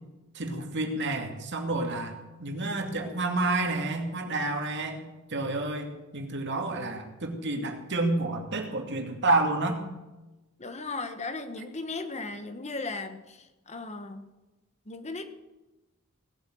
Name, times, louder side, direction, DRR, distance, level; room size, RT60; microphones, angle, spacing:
voice 1, 0.3-5.0 5.3-9.8, right 2 dB, 55° right, 4 dB, 2.5 m, -29 dB
voice 2, 10.6-13.4 13.7-14.2 14.9-15.3, left 3 dB, 30° left, 9 dB, 1.3 m, -36 dB
18.0 x 8.9 x 7.8 m, 1.1 s
head